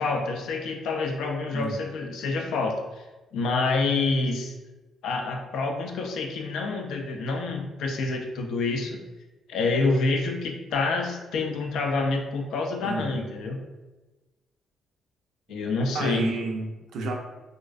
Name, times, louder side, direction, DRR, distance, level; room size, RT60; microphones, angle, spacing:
voice 1, 0.0-3.0 3.3-4.5 5.0-9.0 9.5-13.6 15.5-16.3, left 3 dB, 80° left, 3 dB, 0.3 m, -27 dB
voice 2, 12.8-13.3 15.9-17.1, right 3 dB, 80° right, 1 dB, 0.4 m, -31 dB
2.3 x 2.2 x 2.4 m, 1.1 s
cardioid pair, 90°, 0 cm